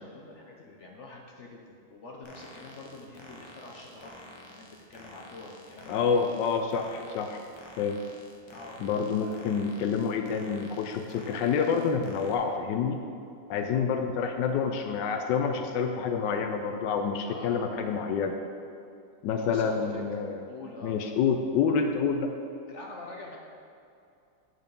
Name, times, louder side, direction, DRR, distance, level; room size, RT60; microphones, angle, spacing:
voice 1, 0.0-6.0 8.5-8.9 9.2-9.5 17.3-17.7 19.3-20.0 20.5-20.9 22.7-23.4, left 2 dB, 55° left, -1 dB, 0.9 m, -45 dB
sound 1, 2.2-12.4, left 1 dB, 30° left, 0.5 m, -50 dB
voice 2, 5.9-7.5 7.8-8.0 8.8-13.0 13.5-18.4 19.2-20.4 20.8-22.3, left 6 dB, 85° left, 5 dB, 1.2 m, -28 dB
8.8 x 4.8 x 5.2 m, 2.5 s
omnidirectional pair, 1.9 m